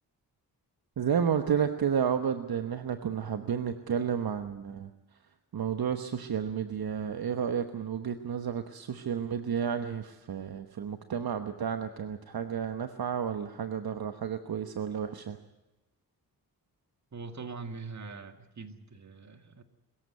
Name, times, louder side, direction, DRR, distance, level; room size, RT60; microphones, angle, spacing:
voice 1, 1.0-4.9 5.5-15.4, right 7 dB, 70° right, 8 dB, 1.2 m, -31 dB
voice 2, 17.1-19.6, right 4 dB, 45° right, 7 dB, 2.0 m, -42 dB
23.0 x 14.5 x 9.4 m, 0.99 s
wide cardioid pair, 90°, 38 cm